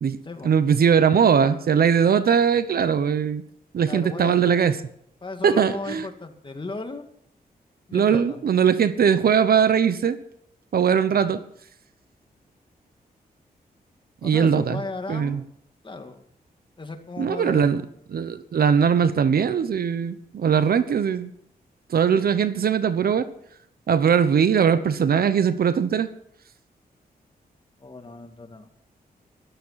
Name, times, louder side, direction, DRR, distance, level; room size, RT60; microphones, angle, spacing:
voice 1, 0.4-3.4 3.7-4.7 5.4-6.1 7.9-10.2 10.7-11.4 14.2-14.8 15.1-15.4 17.2-17.8 18.1-21.3 21.9-23.3 23.9-26.1, right 7 dB, 70° right, 13 dB, 1.0 m, -20 dB
voice 2, 3.8-4.4 5.2-7.0 7.9-8.4 14.2-15.5 15.8-16.2 16.8-17.8 27.8-28.7, left 3 dB, 30° left, 6 dB, 2.1 m, -35 dB
14.0 x 12.5 x 5.8 m, 0.69 s
cardioid pair, 80°, 16 cm